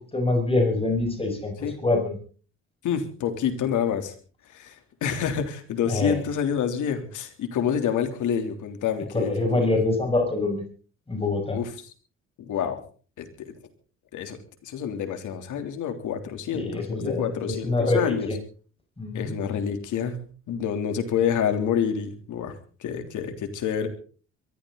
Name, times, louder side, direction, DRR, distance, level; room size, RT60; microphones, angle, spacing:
voice 1, 0.1-2.2 5.9-6.2 9.1-10.6 11.1-11.6 16.5-18.4 19.0-19.3, left 2 dB, 20° left, 3 dB, 6.0 m, -25 dB
voice 2, 2.8-4.1 4.5-4.8 5.0-9.7 11.5-11.7 12.4-12.8 13.2-13.6 14.1-18.3 19.1-20.2 20.5-22.5 22.8-23.9, left 8 dB, 80° left, 6 dB, 3.4 m, -28 dB
23.0 x 13.5 x 4.1 m, 0.40 s
cardioid pair, 90°, 30 cm